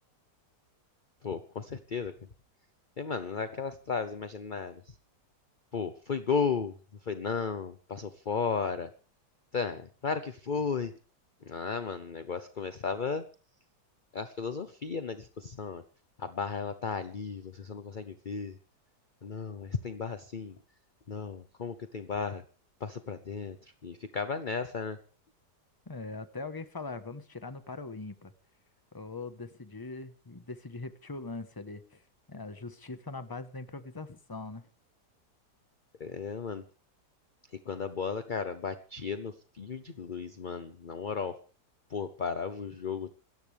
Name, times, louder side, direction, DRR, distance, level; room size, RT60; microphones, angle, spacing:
voice 1, 1.2-2.1 3.0-5.0 5.7-6.7 7.1-8.9 9.5-10.9 11.4-13.3 14.1-15.8 16.2-18.6 19.2-20.6 21.1-22.4 22.8-25.0 36.0-36.6 37.5-41.4 41.9-43.1, left 5 dB, 35° left, 11 dB, 0.9 m, -34 dB
voice 2, 25.9-28.3 28.9-32.0 32.3-34.6, left 3 dB, 15° left, 11 dB, 1.1 m, -41 dB
27.0 x 14.0 x 3.5 m, 0.37 s
omnidirectional pair, 1.8 m